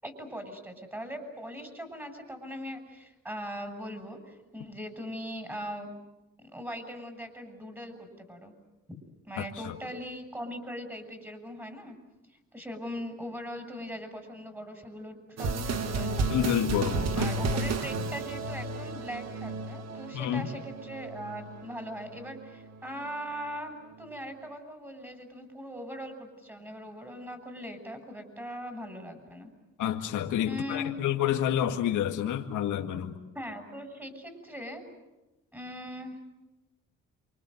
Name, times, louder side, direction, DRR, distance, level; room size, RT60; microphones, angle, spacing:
voice 1, 0.0-5.9 6.4-8.5 8.9-9.0 9.3-11.9 12.5-16.5 17.1-29.5 30.5-31.1 33.3-34.8 35.5-36.2, equal, 5° right, 6 dB, 7.0 m, -40 dB
voice 2, 9.4-9.7 16.3-17.3 20.1-20.5 29.8-33.2, left 10 dB, 80° left, 4 dB, 2.0 m, -29 dB
sound 1, 15.4-23.1, right 3 dB, 60° right, 1.9 m, -33 dB
28.5 x 25.0 x 7.9 m, 1.0 s
cardioid pair, 90°, 30 cm